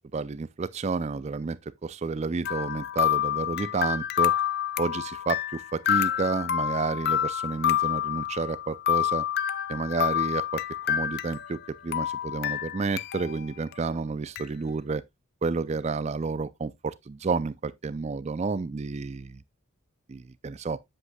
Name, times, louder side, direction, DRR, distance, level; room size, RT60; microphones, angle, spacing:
voice 1, 0.1-4.3 4.8-9.3 9.7-10.6 10.9-15.0 15.4-19.4 20.1-20.8, right 4 dB, 30° right, 0.4 m, -30 dB
sound 1, 2.5-11.7 11.9-13.4 13.7-13.8 14.4-14.5, left 10 dB, 45° left, 0.4 m, -28 dB
8.1 x 7.8 x 2.2 m
head